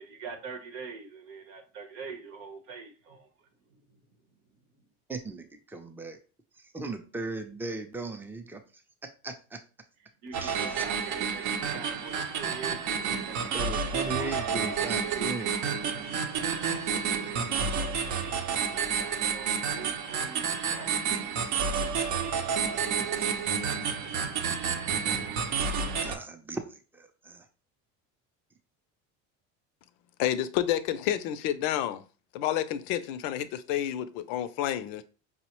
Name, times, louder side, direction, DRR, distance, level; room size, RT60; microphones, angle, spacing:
voice 1, 0.0-4.2 4.7-4.9 10.2-13.4 13.9-15.6 18.7-20.9, right 5 dB, 85° right, 0.9 m, -44 dB
voice 2, 5.1-6.2 6.5-8.6 9.2-9.6 10.4-10.8 13.5-15.5 26.0-27.5, right 2 dB, 5° right, 0.4 m, -38 dB
sound 1, 10.3-26.1, right 6 dB, 60° right, 0.6 m, -30 dB
voice 3, 30.2-32.0 32.3-35.0, left 11 dB, 75° left, 0.5 m, -29 dB
4.7 x 2.1 x 2.9 m
supercardioid pair, 105°, 35 cm